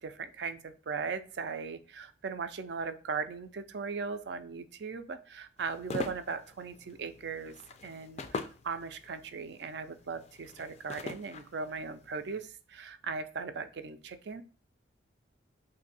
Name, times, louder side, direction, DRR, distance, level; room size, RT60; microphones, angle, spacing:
voice 1, 0.0-7.6 7.8-14.4, right 5 dB, 65° right, 10 dB, 0.4 m, -38 dB
sound 1, 5.6-12.5, left 3 dB, 35° left, 0.3 m, -44 dB
2.7 x 2.6 x 3.9 m, 0.38 s
head